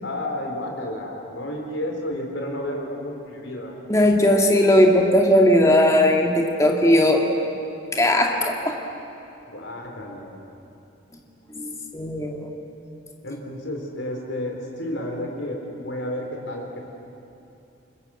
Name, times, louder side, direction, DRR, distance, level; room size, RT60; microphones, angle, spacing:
voice 1, 0.0-3.7 9.5-10.3 13.2-16.8, left 1 dB, 70° left, 1 dB, 4.3 m, -31 dB
voice 2, 3.9-7.3 7.9-8.8 11.5-12.5, left 1 dB, 15° left, 1 dB, 2.3 m, -18 dB
29.0 x 20.0 x 7.9 m, 2.8 s
head